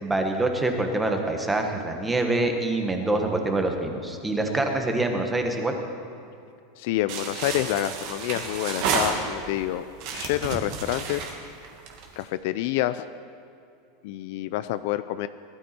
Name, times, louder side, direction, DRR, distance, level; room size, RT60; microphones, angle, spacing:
voice 1, 0.0-5.8, right 2 dB, 5° right, 4 dB, 1.1 m, -25 dB
voice 2, 6.8-9.8 10.1-11.3 12.2-13.0 14.0-15.3, left 14 dB, 55° left, 13 dB, 0.4 m, -28 dB
sound 1, 7.1-9.6 10.0-12.2, right 5 dB, 45° right, 1.9 m, -30 dB
18.5 x 12.5 x 4.4 m, 2.5 s
supercardioid pair, 170°, 0 cm